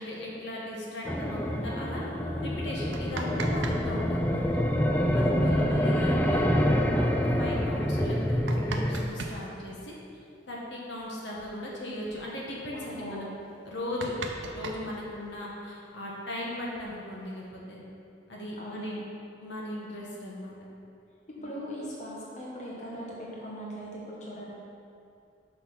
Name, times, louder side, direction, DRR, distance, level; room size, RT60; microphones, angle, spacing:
voice 1, 0.0-2.0 2.4-4.6 5.1-8.2 8.4-9.9 10.5-13.3 13.6-14.1 14.5-17.8 18.3-19.0 19.4-20.6 21.4-21.5, left 1 dB, 75° left, -4 dB, 1.4 m, -38 dB
sound 1, 1.0-9.1, equal, 10° left, 0.4 m, -26 dB
sound 2, 2.7-3.8 4.1-4.2 5.9-6.0 6.4-6.5 7.1-7.2 8.0-9.4 10.9-11.0 11.3-11.5 11.8-12.2 12.8-12.9 13.2-13.3 13.6-15.5 16.4-17.3, right 3 dB, 85° right, 0.7 m, -39 dB
voice 2, 5.6-6.0 13.0-13.3 18.6-19.1 21.4-24.5, equal, 40° left, -5 dB, 1.2 m, -39 dB
6.1 x 5.7 x 5.7 m, 2.5 s
head